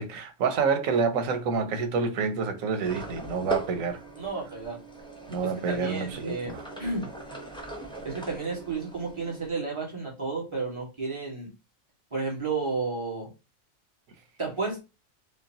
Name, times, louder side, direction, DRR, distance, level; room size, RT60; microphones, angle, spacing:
voice 1, 0.0-4.0 5.3-6.6, right 5 dB, 85° right, 1.2 m, -28 dB
sound 1, 2.8-9.5, right 1 dB, 5° left, 0.7 m, -39 dB
voice 2, 4.2-4.8 5.4-7.1 8.0-11.5 12.1-13.3 14.4-14.8, right 4 dB, 25° right, 1.5 m, -32 dB
5.0 x 2.3 x 2.8 m
omnidirectional pair, 1.3 m